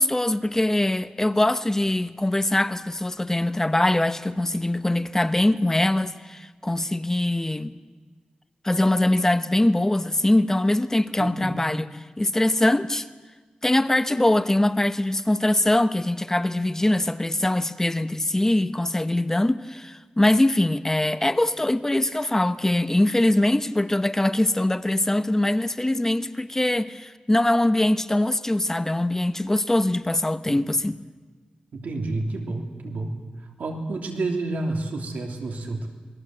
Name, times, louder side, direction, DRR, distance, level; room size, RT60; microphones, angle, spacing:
voice 1, 0.0-7.8 8.6-11.9 12.2-13.1 13.6-31.0, left 1 dB, 15° left, 1.0 m, -22 dB
voice 2, 11.2-11.8 30.5-30.6 31.7-33.2 33.6-35.9, right 2 dB, 90° right, 3.3 m, -30 dB
27.5 x 21.5 x 7.8 m
wide cardioid pair, 80°, 3 cm